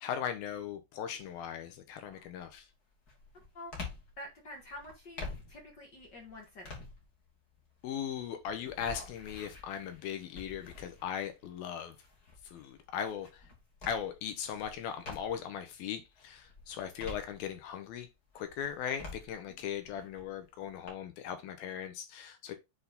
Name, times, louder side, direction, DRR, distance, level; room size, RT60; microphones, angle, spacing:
voice 1, 0.0-2.7 7.8-12.0 12.4-13.3 13.9-18.1 18.4-22.6, left 8 dB, 75° left, 2.6 m, -38 dB
sound 1, 1.2-1.6 2.1-15.6 16.0-17.9 18.3-20.9, left 3 dB, 25° left, 2.5 m, -49 dB
voice 2, 4.2-6.7 19.5-19.7, left 1 dB, 50° left, 1.2 m, -48 dB
8.1 x 4.1 x 4.0 m
omnidirectional pair, 4.6 m